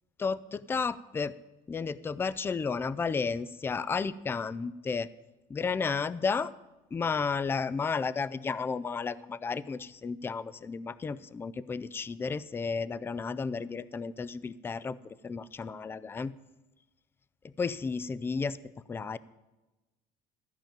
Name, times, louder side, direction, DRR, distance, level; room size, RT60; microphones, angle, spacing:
voice 1, 0.2-1.3 1.7-5.1 5.5-6.5 6.9-15.0 15.2-16.3 17.6-18.6 18.9-19.2, left 5 dB, 15° left, 18 dB, 0.3 m, -32 dB
14.0 x 5.2 x 9.1 m, 1.1 s
cardioid pair, 130°, 17 cm